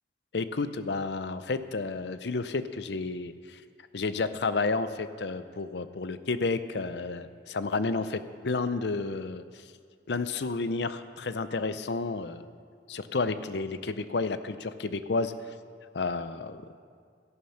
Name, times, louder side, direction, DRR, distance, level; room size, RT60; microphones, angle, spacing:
voice 1, 0.3-3.6 3.9-9.6 10.1-12.4 12.9-15.3 15.9-16.6, left 3 dB, 70° left, 12 dB, 0.6 m, -31 dB
13.5 x 11.0 x 5.7 m, 2.1 s
head